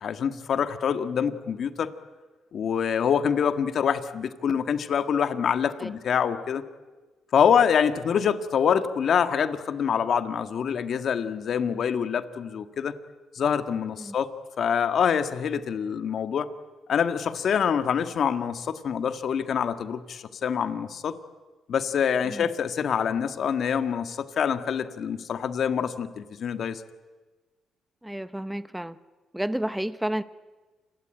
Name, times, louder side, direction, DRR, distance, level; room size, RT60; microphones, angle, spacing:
voice 1, 0.0-1.9 2.5-6.6 7.3-12.9 13.3-14.3 14.6-16.5 16.9-21.2 21.7-26.8, left 7 dB, 60° left, 10 dB, 1.7 m, -25 dB
voice 2, 28.0-29.0 29.3-30.2, right 1 dB, 5° right, 14 dB, 0.8 m, -31 dB
28.0 x 21.5 x 9.1 m, 1.3 s
cardioid pair, 90°, 0 cm